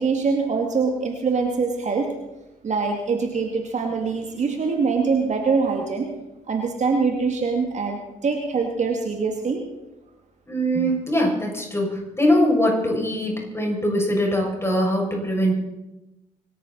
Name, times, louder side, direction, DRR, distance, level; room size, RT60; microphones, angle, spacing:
voice 1, 0.0-2.1 2.6-6.1 6.5-9.6, right 4 dB, 45° right, 3 dB, 2.5 m, -23 dB
voice 2, 10.5-15.5, equal, 15° left, -1 dB, 7.0 m, -22 dB
25.0 x 13.5 x 4.3 m, 0.97 s
hypercardioid pair, 50°, 17 cm